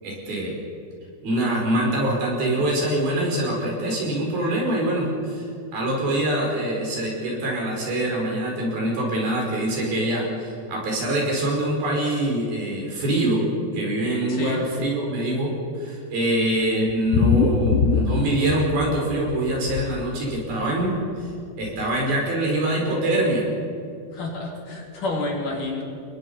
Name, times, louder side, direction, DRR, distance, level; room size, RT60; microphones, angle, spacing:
voice 1, 0.0-0.6 1.2-13.5 13.7-21.0 21.2-21.3 21.6-23.5, right 1 dB, 60° right, -2 dB, 7.2 m, -24 dB
voice 2, 14.3-14.6 24.1-25.8, left 2 dB, 55° left, 0 dB, 4.1 m, -29 dB
sound 1, 16.9-18.9 19.2-19.9 20.9-21.0 21.3-21.4 21.6-21.7, left 5 dB, 85° left, 3.4 m, -21 dB
28.0 x 21.5 x 5.6 m, 2.5 s
omnidirectional pair, 4.8 m